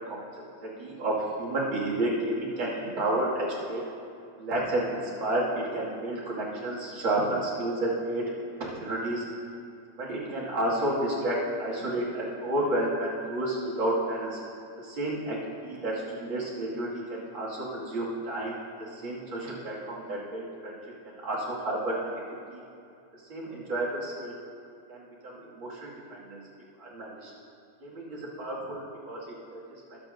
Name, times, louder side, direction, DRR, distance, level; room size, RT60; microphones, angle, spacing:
voice 1, 0.1-3.8 4.4-8.2 8.6-9.2 10.0-14.4 14.8-20.8 21.2-22.2 22.5-22.6 23.3-24.3 24.9-26.4 26.8-27.3 27.8-30.0, right 1 dB, 45° right, -6 dB, 2.7 m, -31 dB
20.0 x 9.3 x 2.6 m, 2.5 s
omnidirectional pair, 3.5 m